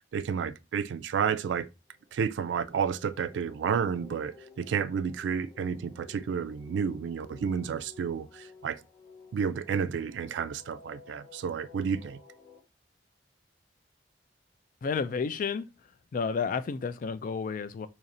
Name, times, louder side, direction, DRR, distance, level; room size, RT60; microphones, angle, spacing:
voice 1, 0.1-1.7 2.1-8.8 9.3-12.2, right 7 dB, 70° right, 0.3 m, -31 dB
sound 1, 1.9-12.6, left 4 dB, 20° left, 0.8 m, -54 dB
voice 2, 14.8-15.7 16.1-17.9, left 5 dB, 45° left, 0.3 m, -31 dB
2.9 x 2.6 x 4.1 m
head